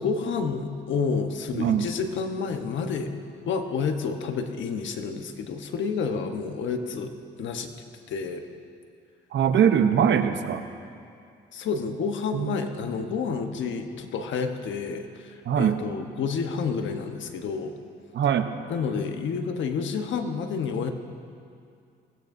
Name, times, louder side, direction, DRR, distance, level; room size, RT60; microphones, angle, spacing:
voice 1, 0.0-3.1 3.5-7.1 7.4-7.7 8.1-8.5 11.5-17.8 18.7-20.9, left 5 dB, 70° left, 6 dB, 1.2 m, -29 dB
voice 2, 1.5-1.9 9.3-10.6 12.3-12.7 15.5-15.8 18.1-18.5, right 8 dB, 65° right, 8 dB, 0.9 m, -22 dB
21.0 x 17.5 x 2.7 m, 2.4 s
cardioid pair, 90°, 20 cm